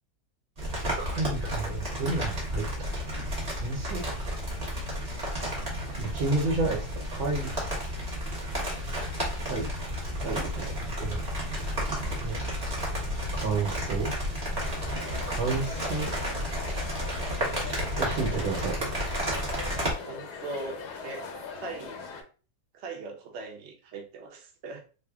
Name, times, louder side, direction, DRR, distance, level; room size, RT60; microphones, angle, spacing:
sound 1, 0.6-19.9, equal, 30° right, 0.8 m, -32 dB
voice 1, 1.0-2.7 3.2-3.3 3.6-4.0 6.0-7.5 9.5-9.7 10.2-11.2 12.2-12.4 13.3-14.1 15.4-16.1 18.0-18.8, right 3 dB, 80° right, -1 dB, 1.6 m, -31 dB
sound 2, 14.6-22.2, left 5 dB, 70° left, 1.1 m, -41 dB
voice 2, 20.0-21.3 21.6-22.0 22.7-24.8, right 3 dB, 65° right, 1 dB, 0.6 m, -40 dB
3.5 x 2.0 x 3.4 m, 0.36 s
omnidirectional pair, 2.1 m